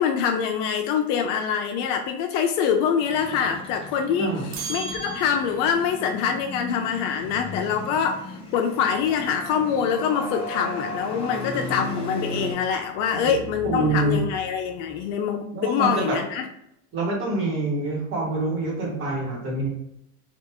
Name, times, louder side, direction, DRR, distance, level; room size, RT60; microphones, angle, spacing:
voice 1, 0.0-16.5, left 7 dB, 70° left, 4 dB, 0.5 m, -25 dB
sound 1, 3.0-12.5, left 1 dB, 15° left, 0.6 m, -37 dB
voice 2, 4.2-4.5 13.1-13.3 13.6-14.2 15.5-16.2 16.9-19.7, right 2 dB, 35° right, -2 dB, 1.1 m, -26 dB
sound 2, 4.5-5.9, right 5 dB, 80° right, 0.6 m, -35 dB
sound 3, 9.1-15.1, left 1 dB, 35° left, 0.9 m, -38 dB
3.4 x 2.4 x 2.9 m, 0.79 s
cardioid pair, 165°, 37 cm